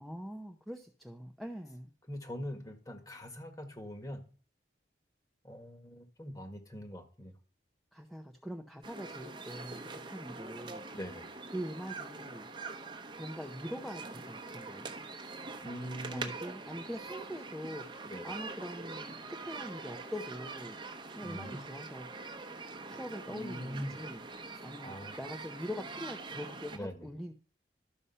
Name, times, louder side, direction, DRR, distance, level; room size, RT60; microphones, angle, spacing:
voice 1, 0.0-1.9 7.9-10.9 11.5-12.5 13.2-15.0 16.1-17.9 18.2-20.8 21.2-22.1 22.9-27.3, equal, ahead, 4 dB, 0.7 m, -43 dB
voice 2, 2.1-4.2 5.4-7.3 10.9-11.2 15.6-16.3 18.0-18.3 21.2-21.6 23.3-24.0 24.8-25.2 26.7-27.1, equal, 20° left, 6 dB, 1.7 m, -42 dB
sound 1, 8.8-26.8, right 3 dB, 25° right, 1.0 m, -44 dB
12.5 x 7.0 x 5.6 m, 0.40 s
head